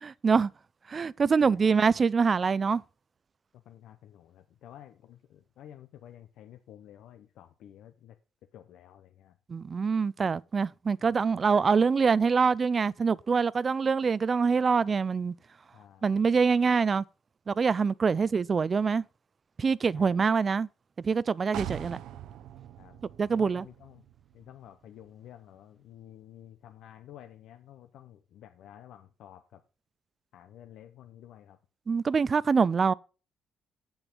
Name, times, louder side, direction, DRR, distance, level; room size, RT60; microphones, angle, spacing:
voice 1, 0.0-0.5 0.9-2.8 9.5-15.3 16.0-17.0 17.5-19.0 19.6-20.7 21.0-22.0 23.2-23.7 31.9-32.9, right 5 dB, 40° right, 0.4 m, -25 dB
voice 2, 1.4-1.7 3.5-8.2 8.5-9.4 11.0-11.2 15.7-16.2 18.1-18.4 19.9-20.3 22.8-23.0 23.3-24.1 24.3-29.6 30.3-31.6, left 11 dB, 80° left, 0.8 m, -51 dB
sound 1, 21.5-25.3 25.6-25.7, right 11 dB, 85° right, 0.7 m, -43 dB
8.0 x 7.1 x 5.1 m
cardioid pair, 90°, 0 cm